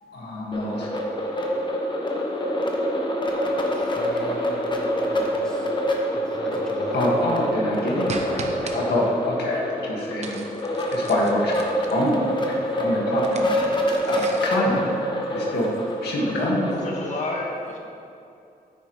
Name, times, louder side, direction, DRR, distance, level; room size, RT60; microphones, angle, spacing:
voice 1, 0.0-0.9 2.2-2.5 6.9-10.4 10.9-11.5 11.9-12.2 12.8-13.6 14.0-15.7 16.0-16.7, left 1 dB, 85° left, -3 dB, 1.9 m, -26 dB
sound 1, 0.5-17.2, equal, 30° left, 1.1 m, -26 dB
voice 2, 3.4-4.6 5.0-5.7 6.1-7.0, equal, 5° left, -3 dB, 1.3 m, -39 dB
sound 2, 8.1-8.8 10.2-12.1 13.1-14.6, right 4 dB, 45° right, 0.8 m, -38 dB
voice 3, 16.7-17.8, left 2 dB, 45° left, -2 dB, 1.7 m, -30 dB
9.6 x 9.3 x 3.2 m, 2.6 s
wide cardioid pair, 135°, 16 cm